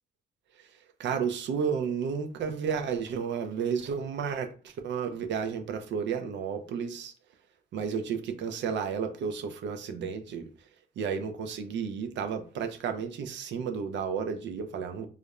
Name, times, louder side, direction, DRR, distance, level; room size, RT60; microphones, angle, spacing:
voice 1, 1.0-4.5 4.8-7.1 7.7-10.5 11.0-15.1, right 6 dB, 65° right, 0.5 m, -32 dB
2.4 x 2.1 x 2.9 m
cardioid pair, 90°, 20 cm